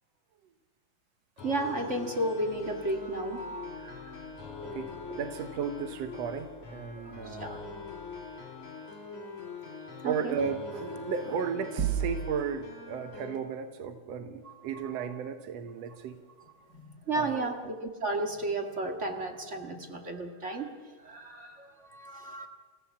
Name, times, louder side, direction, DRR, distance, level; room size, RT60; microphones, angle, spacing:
sound 1, 1.4-13.4, left 5 dB, 55° left, 5.3 m, -43 dB
voice 1, 1.4-4.4 7.0-7.6 9.8-10.4 14.4-14.5 14.8-15.1 15.9-16.0 16.7-20.7 21.0-22.5, right 2 dB, 30° right, 3 dB, 1.4 m, -34 dB
sound 2, 2.5-8.2, right 9 dB, 80° right, 7.7 m, -58 dB
voice 2, 4.6-7.6 10.0-16.2 17.1-17.6, right 6 dB, 65° right, 7 dB, 1.7 m, -35 dB
sound 3, 11.8-12.7, right 8 dB, 45° right, 1.1 m, -31 dB
29.0 x 16.5 x 7.2 m, 1.5 s
omnidirectional pair, 4.0 m